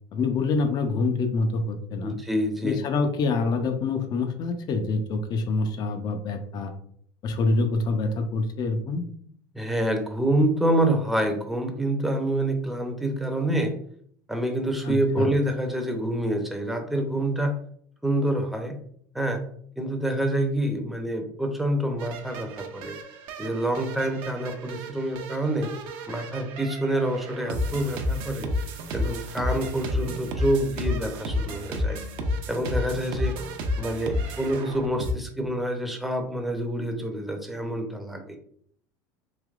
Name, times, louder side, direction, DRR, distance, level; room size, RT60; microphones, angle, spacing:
voice 1, 0.1-2.1 2.6-6.7 7.2-9.0 14.8-15.3 26.1-26.2, left 3 dB, 45° left, 7 dB, 0.6 m, -26 dB
voice 2, 2.0-2.8 9.5-13.7 14.3-17.5 18.0-18.8 19.1-19.4 19.8-23.0 23.4-25.7 26.1-28.5 28.9-32.0 32.5-33.3 33.8-38.4, right 1 dB, ahead, 4 dB, 0.6 m, -27 dB
sound 1, 22.0-35.1, left 1 dB, 60° right, 0.6 m, -31 dB
3.3 x 2.9 x 2.4 m, 0.63 s
supercardioid pair, 95°, 10 cm